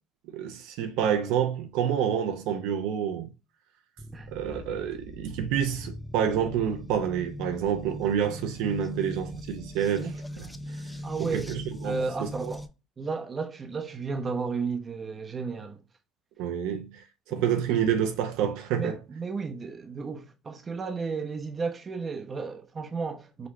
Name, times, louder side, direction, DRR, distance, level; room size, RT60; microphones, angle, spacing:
voice 1, 0.3-3.3 4.3-10.5 11.3-12.5 16.4-17.0 17.3-19.0, right 8 dB, 80° right, 0.8 m, -28 dB
sound 1, 4.0-12.7, left 1 dB, 5° left, 0.5 m, -40 dB
voice 2, 11.0-11.5 11.8-12.7 13.0-15.8 17.3-17.7 18.7-23.5, right 4 dB, 30° right, 0.8 m, -33 dB
5.1 x 3.0 x 3.2 m
supercardioid pair, 95°, 0 cm